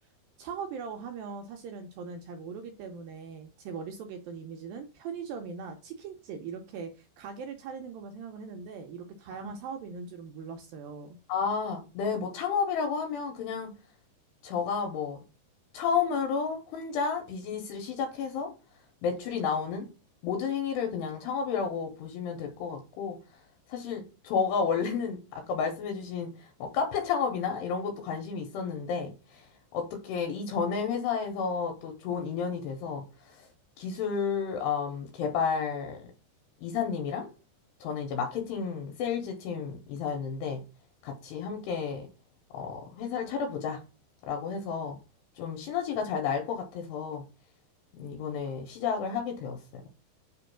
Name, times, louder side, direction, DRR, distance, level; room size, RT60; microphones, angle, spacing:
voice 1, 0.4-11.2, right 6 dB, 80° right, 2.1 m, -40 dB
voice 2, 11.3-13.7 14.4-15.2 15.7-18.5 19.0-19.9 20.2-23.2 23.7-29.5 29.7-33.0 33.4-33.5 33.8-36.1 36.6-37.3 37.8-40.6 41.0-42.1 42.5-43.8 44.3-45.0 45.4-47.2 47.9-49.6, left 6 dB, 85° left, 3.0 m, -31 dB
6.1 x 3.0 x 5.7 m
omnidirectional pair, 4.9 m